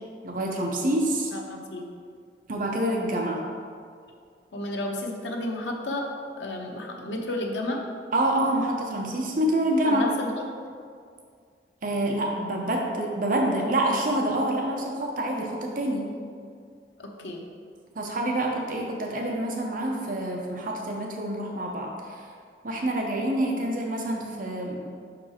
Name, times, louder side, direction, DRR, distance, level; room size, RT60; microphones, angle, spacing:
voice 1, 0.2-1.3 2.5-3.4 8.1-10.1 11.8-16.1 18.0-22.3 22.6-24.9, right 1 dB, 50° right, 0 dB, 0.7 m, -27 dB
voice 2, 1.3-1.9 4.5-6.1 6.4-7.8 9.8-10.3 17.0-17.4, left 1 dB, 85° left, 1 dB, 0.9 m, -32 dB
5.7 x 5.2 x 4.2 m, 2.2 s
head